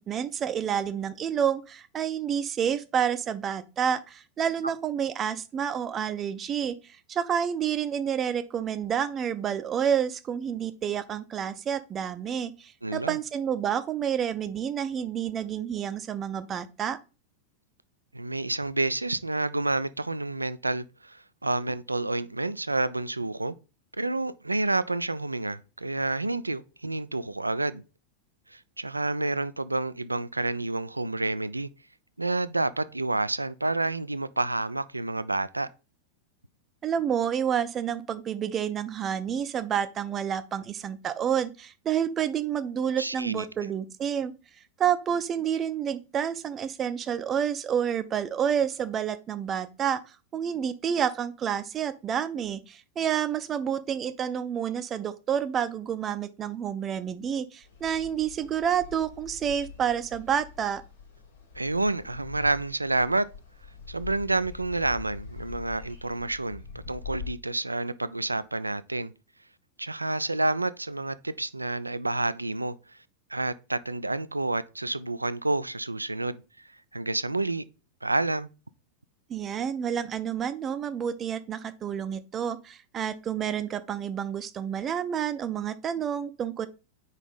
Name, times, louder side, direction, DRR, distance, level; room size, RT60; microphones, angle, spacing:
voice 1, 0.0-17.0 36.8-44.3 44.8-50.0 50.3-60.8 79.3-86.7, right 8 dB, 25° right, 0.5 m, -29 dB
voice 2, 12.8-13.2 18.1-23.5 24.0-27.8 28.5-31.7 32.2-35.7 43.0-43.5 61.6-63.3 63.9-69.1 69.8-72.8 73.3-76.4 76.9-77.6 78.0-78.5, right 2 dB, 85° right, 0.3 m, -29 dB
sound 1, 57.6-67.3, left 6 dB, 70° left, 1.7 m, -44 dB
4.9 x 4.0 x 5.3 m
figure-of-eight pair, 90°, 0 cm